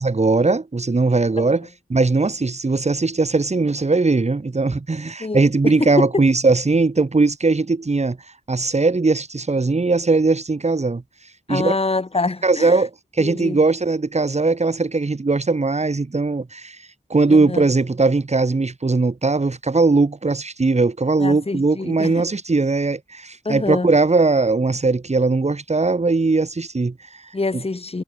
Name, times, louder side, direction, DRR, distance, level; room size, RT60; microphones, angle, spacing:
voice 1, 0.0-8.2 8.5-11.0 11.5-11.8 12.4-16.8 17.1-27.2 27.5-27.6, right 3 dB, 40° right, 1.7 m, -19 dB
voice 2, 5.2-6.2 11.5-12.8 13.2-13.6 17.3-17.6 21.2-22.2 23.5-23.9 27.3-28.0, left 3 dB, 35° left, 1.8 m, -25 dB
wide cardioid pair, 75°, 18 cm